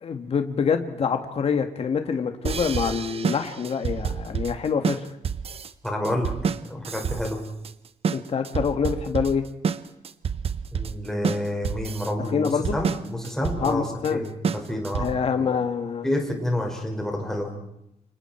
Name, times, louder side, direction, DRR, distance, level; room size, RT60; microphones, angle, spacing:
voice 1, 0.0-5.1 8.1-9.4 12.3-12.8 13.6-14.2 15.0-16.1, left 6 dB, 50° left, 7 dB, 1.7 m, -26 dB
sound 1, 2.4-15.3, right 6 dB, 45° right, 1.0 m, -29 dB
voice 2, 5.8-6.3 6.7-7.4 10.7-15.1 15.3-15.5 16.0-17.5, left 1 dB, 5° left, 0 dB, 5.3 m, -29 dB
30.0 x 26.5 x 4.5 m, 0.82 s
wide cardioid pair, 175°, 14 cm